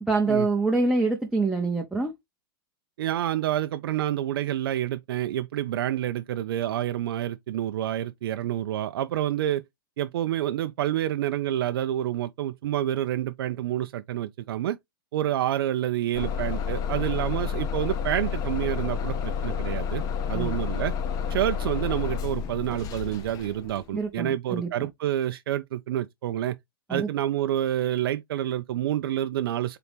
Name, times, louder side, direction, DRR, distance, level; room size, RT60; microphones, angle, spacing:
voice 1, 0.0-2.1 20.3-20.6 23.9-24.7 26.9-27.1, right 3 dB, 5° right, 0.7 m, -25 dB
voice 2, 3.0-9.6 10.0-14.8 15.1-20.9 21.3-26.6 26.9-29.8, right 12 dB, 75° right, 0.4 m, -28 dB
Bus / Engine starting, 16.1-23.9, left 7 dB, 30° left, 0.6 m, -30 dB
3.8 x 2.8 x 3.5 m
hypercardioid pair, 135°, 12 cm